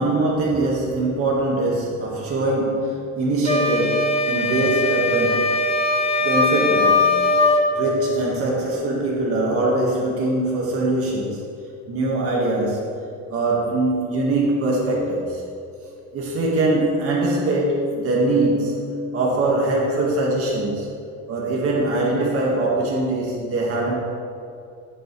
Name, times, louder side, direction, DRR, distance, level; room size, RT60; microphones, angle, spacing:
voice 1, 0.0-5.4 6.2-7.1 7.7-11.5 11.9-12.9 13.3-15.4 15.8-18.8 19.1-20.9 21.3-24.0, right 2 dB, 50° right, -3 dB, 1.9 m, -22 dB
sound 1, 3.5-7.7, left 3 dB, 20° left, 0.9 m, -20 dB
15.5 x 7.1 x 3.3 m, 2.5 s
cardioid pair, 145°, 30 cm